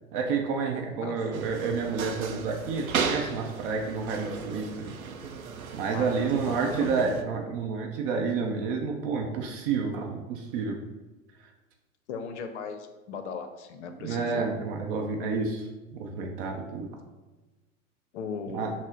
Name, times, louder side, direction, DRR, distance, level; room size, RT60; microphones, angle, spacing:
voice 1, 0.1-4.9 5.7-10.8 14.0-15.7 16.0-16.9 18.5-18.7, right 5 dB, 40° right, 2 dB, 0.6 m, -29 dB
voice 2, 1.0-1.5 5.9-7.2 12.1-14.4 18.1-18.7, left 5 dB, 55° left, 7 dB, 0.6 m, -38 dB
sound 1, 1.3-7.2, right 5 dB, 85° right, 0.5 m, -35 dB
6.1 x 2.1 x 3.8 m, 1.2 s
figure-of-eight pair, 90°, 41 cm